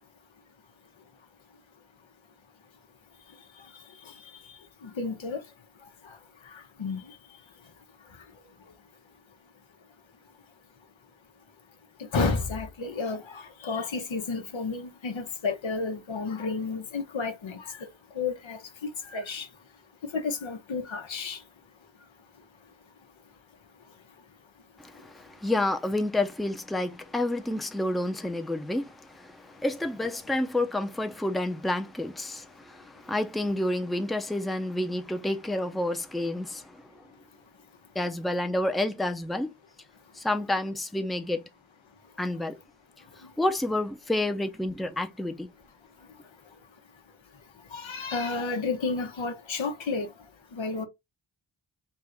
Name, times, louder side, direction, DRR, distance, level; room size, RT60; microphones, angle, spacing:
voice 1, 4.8-5.4 6.8-7.0 12.1-13.2 13.6-17.6 18.2-18.6 19.1-19.5 20.1-21.4 47.7-50.1 50.6-50.9, left 4 dB, 75° left, 1.0 m, -31 dB
voice 2, 24.8-36.8 37.9-39.5 40.2-41.4 42.2-42.6 43.4-45.5, left 1 dB, ahead, 0.6 m, -29 dB
3.7 x 2.5 x 4.5 m
cardioid pair, 40°, 47 cm